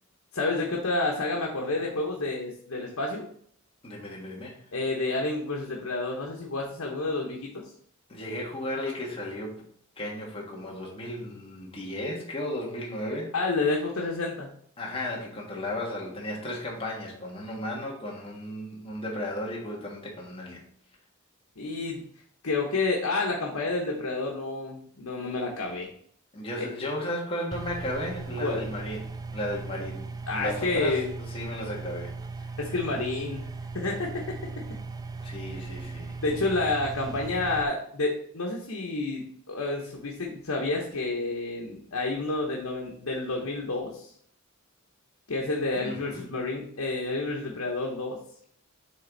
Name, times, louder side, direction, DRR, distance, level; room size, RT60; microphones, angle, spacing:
voice 1, 0.3-3.3 4.7-7.7 13.3-14.5 21.6-22.0 22.4-25.9 28.4-28.6 30.3-31.1 32.6-34.6 36.2-44.1 45.3-48.2, left 3 dB, 90° left, -1 dB, 1.1 m, -29 dB
voice 2, 3.8-4.6 8.1-9.6 10.0-13.3 14.8-20.6 26.3-29.1 29.3-32.1 35.2-36.2 45.8-46.2, left 1 dB, 25° left, -2 dB, 1.4 m, -34 dB
sound 1, 27.5-37.6, right 3 dB, 20° right, 0.4 m, -38 dB
7.7 x 3.8 x 4.0 m, 0.62 s
head